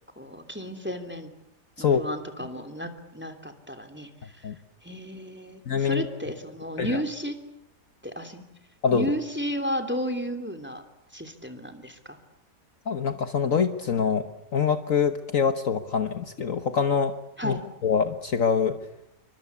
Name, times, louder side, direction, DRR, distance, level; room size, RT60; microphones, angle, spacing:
voice 1, 0.2-1.3 1.8-4.3 4.8-7.3 8.0-8.4 8.9-10.8 11.1-12.2 17.4-17.6, equal, 5° right, 9 dB, 3.0 m, -33 dB
voice 2, 5.7-6.1 6.8-7.0 8.8-9.1 12.9-17.1 17.4-17.5 17.8-18.8, left 6 dB, 55° left, 9 dB, 1.6 m, -24 dB
28.5 x 24.5 x 8.4 m, 0.80 s
omnidirectional pair, 1.8 m